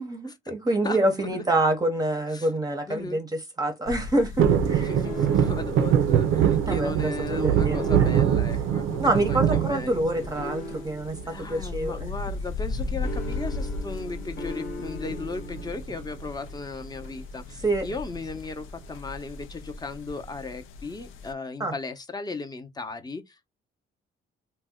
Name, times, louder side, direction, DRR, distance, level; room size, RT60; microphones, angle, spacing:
voice 1, 0.0-4.9 6.7-8.1 9.0-12.1 17.6-17.9 21.6-21.7, right 1 dB, 20° right, 0.7 m, -26 dB
voice 2, 0.8-1.4 2.3-2.5 2.9-3.2 4.6-10.5 11.2-23.5, left 3 dB, 20° left, 0.6 m, -36 dB
sound 1, 3.9-21.3, left 3 dB, 85° left, 0.5 m, -37 dB
sound 2, 4.4-10.6 11.0-11.6 12.9-13.3 13.5-13.6 13.9-14.2 15.1-16.0 16.5-16.6, right 9 dB, 90° right, 0.4 m, -23 dB
sound 3, 5.0-5.8 7.7-8.5 10.4-11.2 13.0-15.7, left 2 dB, 55° left, 1.0 m, -38 dB
2.6 x 2.1 x 3.5 m
cardioid pair, 90°, 20 cm